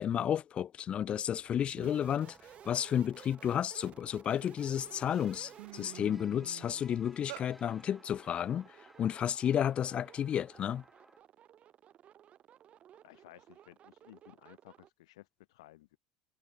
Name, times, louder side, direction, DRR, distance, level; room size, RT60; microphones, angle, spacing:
voice 1, 0.0-2.4 2.7-8.7 9.0-10.8, left 9 dB, 40° left, 0.5 m, -32 dB
sound 1, 1.4-1.5 1.8-2.2 2.6-4.2 4.8-4.9 5.3-7.5, right 24 dB, 75° right, 1.2 m, -49 dB
sound 2, 1.8-14.9, right 10 dB, 45° right, 5.2 m, -57 dB
sound 3, 1.9-11.2, equal, ahead, 6.3 m, -60 dB
voice 2, 13.0-16.0, left 17 dB, 80° left, 2.5 m, -57 dB
hypercardioid pair, 85°, 3 cm